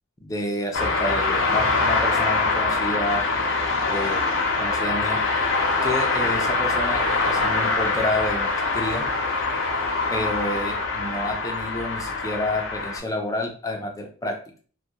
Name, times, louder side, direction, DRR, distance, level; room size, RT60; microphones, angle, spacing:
voice 1, 0.2-3.3 3.8-4.3 4.6-5.2 5.8-9.1 10.1-14.4, left 1 dB, 15° left, 2 dB, 0.4 m, -29 dB
sound 1, 0.7-13.0, left 3 dB, 65° left, 0.6 m, -24 dB
2.3 x 2.1 x 2.8 m, 0.42 s
head